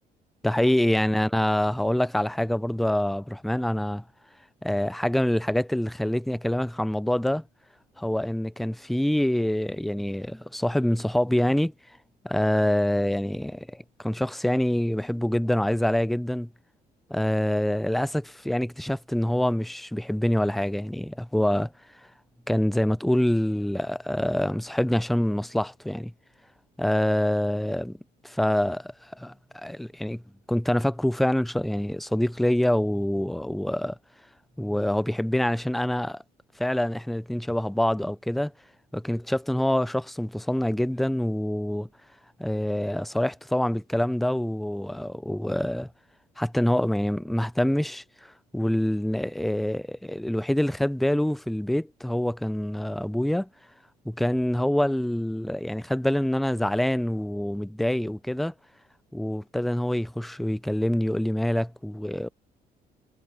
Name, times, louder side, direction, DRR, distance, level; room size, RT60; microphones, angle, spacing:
voice 1, 0.4-4.0 4.6-7.4 8.0-11.7 12.2-16.5 17.1-21.7 22.5-26.1 26.8-28.0 28.2-30.2 30.5-34.0 34.6-36.2 36.6-38.5 38.9-41.9 42.4-45.9 46.4-53.5 54.1-58.5 59.1-62.3, left 1 dB, ahead, 0.4 m, -26 dB
cardioid pair, 110°, 17 cm